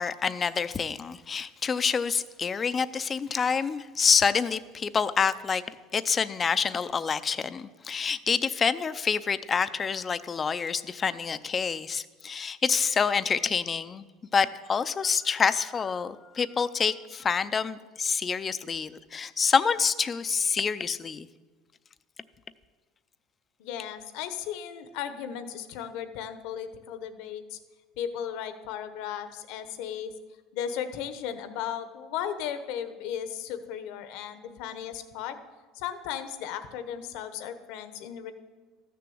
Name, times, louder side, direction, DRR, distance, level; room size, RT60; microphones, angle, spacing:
voice 1, 0.0-5.6 5.9-14.1 14.3-21.3, left 6 dB, 25° left, 14 dB, 0.5 m, -27 dB
voice 2, 23.6-27.6 28.0-30.1 30.5-35.4 35.7-38.3, left 9 dB, 70° left, 10 dB, 1.1 m, -36 dB
13.5 x 6.8 x 7.8 m, 1.3 s
supercardioid pair, 130°, 0 cm